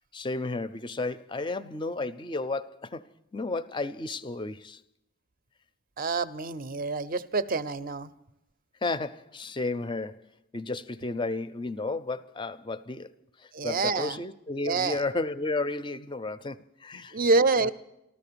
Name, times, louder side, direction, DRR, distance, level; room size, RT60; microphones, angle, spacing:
voice 1, 0.1-3.0 3.3-4.8 8.8-10.3 10.5-13.1 13.6-17.2 17.6-17.7, left 3 dB, 20° left, 0.4 m, -32 dB
voice 2, 6.0-8.1 13.5-14.2 14.6-15.0 17.1-17.7, right 3 dB, 40° right, 0.5 m, -26 dB
13.5 x 13.5 x 6.8 m
head